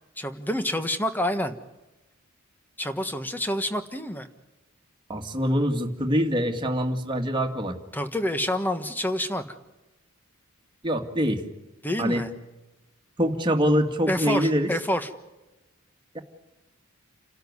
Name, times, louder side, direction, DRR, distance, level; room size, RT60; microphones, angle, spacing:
voice 1, 0.2-1.6 2.8-4.3 7.9-9.4 11.8-12.3 14.1-15.1, left 1 dB, 10° left, 9 dB, 1.4 m, -28 dB
voice 2, 5.1-7.8 10.8-11.4 12.0-12.2 13.2-14.7 16.1-16.2, equal, 20° right, 3 dB, 2.1 m, -24 dB
29.5 x 13.0 x 9.7 m, 1.1 s
head